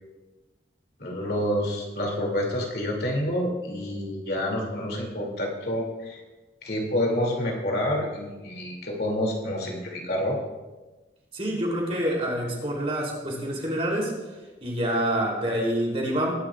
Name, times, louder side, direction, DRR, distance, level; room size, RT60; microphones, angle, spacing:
voice 1, 1.0-6.2 6.6-10.4, left 1 dB, 60° left, -1 dB, 2.9 m, -28 dB
voice 2, 11.3-14.1 14.6-16.3, right 1 dB, 35° right, -2 dB, 3.5 m, -27 dB
21.5 x 11.0 x 2.5 m, 1.2 s
head